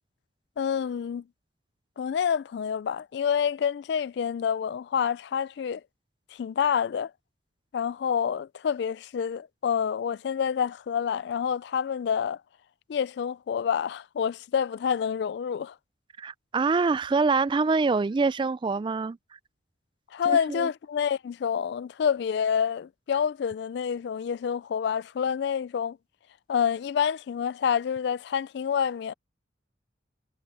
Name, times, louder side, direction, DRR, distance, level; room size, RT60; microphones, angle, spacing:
voice 1, 0.6-1.2 2.0-5.8 6.3-7.1 7.7-12.4 12.9-15.7 20.1-26.0 26.5-29.1, left 7 dB, 60° left, 0.3 m, -28 dB
voice 2, 16.2-19.2 20.3-20.7, right 4 dB, 25° right, 0.3 m, -25 dB
head